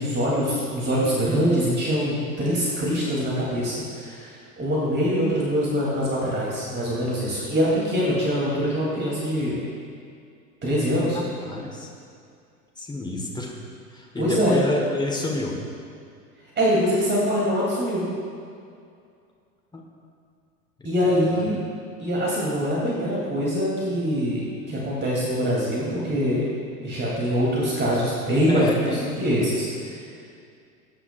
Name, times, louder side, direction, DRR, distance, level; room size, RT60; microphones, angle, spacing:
voice 1, 0.0-9.6 10.6-11.2 14.2-14.6 16.5-18.1 20.8-21.6 22.0-26.4 26.8-28.9 29.2-29.9, equal, 20° right, -6 dB, 3.1 m, -24 dB
voice 2, 11.1-11.9 12.8-13.6 13.9-15.5 19.7-19.8 20.8-21.4 28.5-29.1, left 2 dB, 10° left, -1 dB, 1.4 m, -29 dB
19.0 x 10.0 x 2.5 m, 2.4 s
figure-of-eight pair, 90°, 47 cm